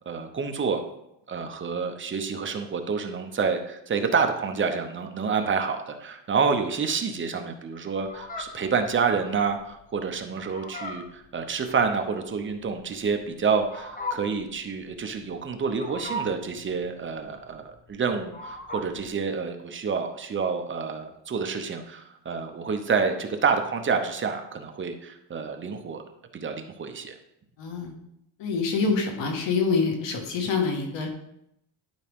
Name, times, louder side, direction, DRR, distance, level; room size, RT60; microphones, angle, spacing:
voice 1, 0.1-0.8 1.3-26.0 26.3-27.1, right 5 dB, 25° right, 5 dB, 0.8 m, -28 dB
Fowl, 8.0-19.1, left 1 dB, 20° left, 1.0 m, -39 dB
voice 2, 27.6-27.9 28.4-31.1, left 4 dB, 70° left, 2 dB, 1.9 m, -26 dB
11.5 x 4.8 x 3.6 m, 0.79 s
cardioid pair, 145°, 45 cm